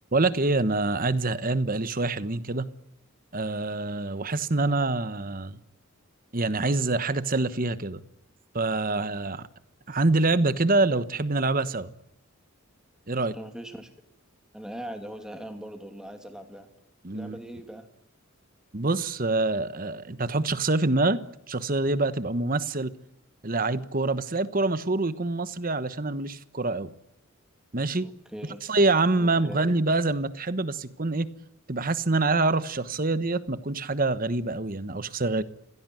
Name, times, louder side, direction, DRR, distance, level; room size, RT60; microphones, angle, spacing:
voice 1, 0.1-2.7 3.3-5.6 6.3-8.0 8.5-9.5 9.9-11.9 13.1-13.3 17.0-17.4 18.7-22.9 23.4-26.9 27.7-28.1 28.7-31.3 31.7-35.4, right 2 dB, 40° right, 1.2 m, -26 dB
voice 2, 13.1-13.9 14.5-16.7 17.1-17.9 28.0-28.6 29.2-29.7, right 1 dB, 5° right, 2.8 m, -41 dB
27.0 x 17.0 x 9.3 m
head